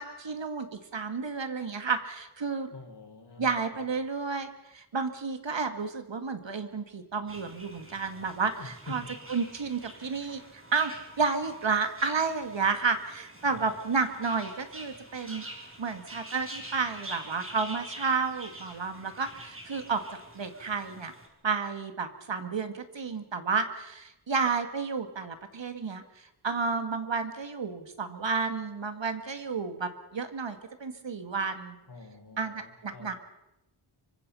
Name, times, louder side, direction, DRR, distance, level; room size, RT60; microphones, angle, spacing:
voice 1, 0.0-2.7 3.4-9.0 9.3-15.4 15.8-21.1 21.4-31.8 32.4-33.2, right 5 dB, 65° right, 8 dB, 2.4 m, -31 dB
voice 2, 2.7-3.9 8.6-8.9 31.9-33.1, left 3 dB, 55° left, 4 dB, 5.2 m, -46 dB
sound 1, 7.3-21.3, right 1 dB, 25° right, 5.4 m, -46 dB
25.5 x 24.5 x 5.7 m, 0.91 s
wide cardioid pair, 110°, 48 cm